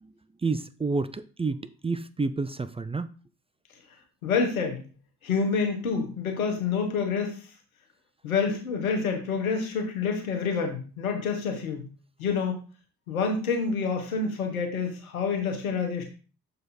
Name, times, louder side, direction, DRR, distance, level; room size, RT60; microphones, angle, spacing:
voice 1, 0.4-3.1, right 3 dB, 15° right, 0.5 m, -29 dB
voice 2, 4.2-4.8 5.2-7.4 8.2-11.8 12.2-12.5 13.1-16.0, left 5 dB, 90° left, 1.2 m, -27 dB
6.8 x 4.1 x 4.2 m
hypercardioid pair, 40°, 41 cm